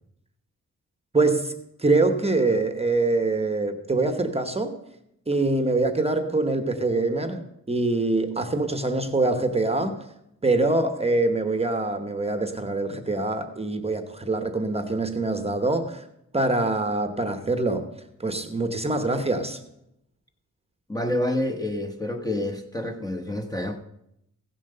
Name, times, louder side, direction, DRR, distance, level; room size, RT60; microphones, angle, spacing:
voice 1, 1.1-1.5 1.8-4.7 5.3-10.0 10.4-16.0 16.3-17.9 18.2-19.6, right 2 dB, 20° right, 7 dB, 0.9 m, -24 dB
voice 2, 20.9-23.8, left 1 dB, 10° left, 3 dB, 0.9 m, -28 dB
15.5 x 7.3 x 6.6 m, 0.80 s
wide cardioid pair, 155°, 32 cm